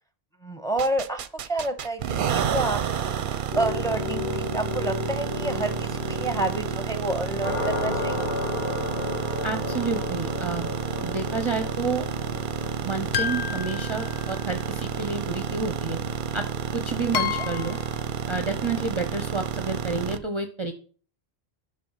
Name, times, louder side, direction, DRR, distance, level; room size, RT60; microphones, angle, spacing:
voice 1, 0.4-8.2 17.4-17.5 18.7-18.8, right 2 dB, 5° left, 8 dB, 1.2 m, -29 dB
sound 1, 0.8-20.2, right 7 dB, 60° right, 0.7 m, -30 dB
sound 2, 3.5-17.4, left 2 dB, 55° left, 3.1 m, -34 dB
voice 2, 9.4-10.7 11.0-12.1 12.8-16.0 16.3-16.4 16.7-17.8 18.3-20.7, right 4 dB, 30° right, 6 dB, 0.8 m, -30 dB
sound 3, 13.1-14.7 16.1-16.2 17.1-18.0, left 8 dB, 80° left, 0.9 m, -30 dB
11.0 x 5.7 x 5.6 m, 0.42 s
omnidirectional pair, 1.0 m